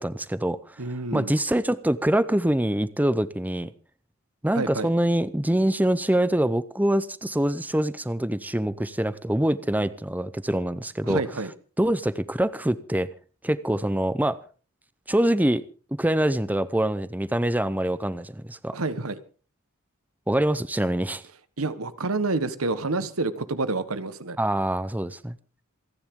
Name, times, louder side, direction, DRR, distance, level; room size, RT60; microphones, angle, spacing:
voice 1, 0.0-0.8 1.1-3.7 4.4-11.4 11.8-13.1 13.4-14.4 15.1-15.6 16.0-18.8 20.3-21.2 24.4-25.4, right 1 dB, 10° right, 15 dB, 0.7 m, -24 dB
voice 2, 0.8-1.3 4.5-4.9 11.0-11.5 18.7-19.2 21.6-24.4, right 3 dB, 75° right, 13 dB, 1.4 m, -28 dB
27.5 x 10.5 x 3.7 m, 0.38 s
head